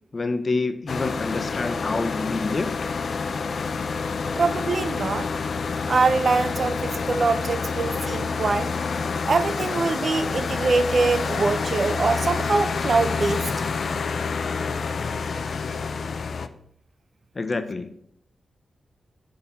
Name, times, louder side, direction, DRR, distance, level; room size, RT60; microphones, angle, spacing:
voice 1, 0.1-2.7 17.3-18.0, left 3 dB, 40° left, 0.9 m, -27 dB
sound 1, 0.9-16.5, left 5 dB, 65° left, 0.6 m, -28 dB
voice 2, 4.4-5.3 5.9-8.8 9.3-13.7, right 4 dB, 55° right, 0.6 m, -23 dB
9.6 x 3.9 x 5.8 m
cardioid pair, 65°, 0 cm